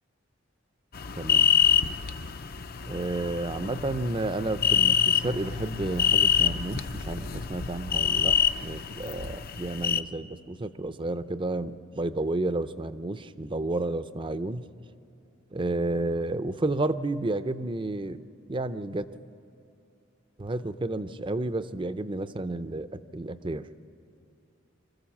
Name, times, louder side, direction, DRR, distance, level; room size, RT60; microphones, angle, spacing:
sound 1, 0.9-10.0, left 8 dB, 50° left, 0.6 m, -26 dB
voice 1, 1.2-1.5 2.9-14.7 15.5-18.2 18.5-19.0 20.4-23.7, right 2 dB, 25° right, 12 dB, 0.6 m, -31 dB
26.5 x 14.0 x 7.3 m, 2.7 s
head